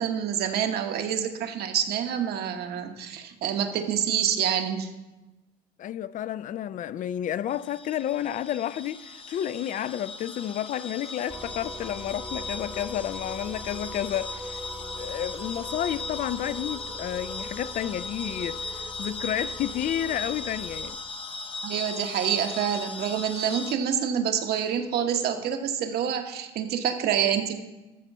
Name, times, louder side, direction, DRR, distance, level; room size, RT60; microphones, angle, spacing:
voice 1, 0.0-4.9 21.6-27.5, right 8 dB, 70° right, 1.1 m, -27 dB
voice 2, 5.8-14.6 15.0-21.0, left 11 dB, 50° left, 0.4 m, -31 dB
sound 1, 7.5-23.7, left 3 dB, 30° left, 0.8 m, -38 dB
sound 2, 11.3-20.9, equal, ahead, 1.0 m, -41 dB
13.0 x 4.4 x 7.1 m
cardioid pair, 110°, 17 cm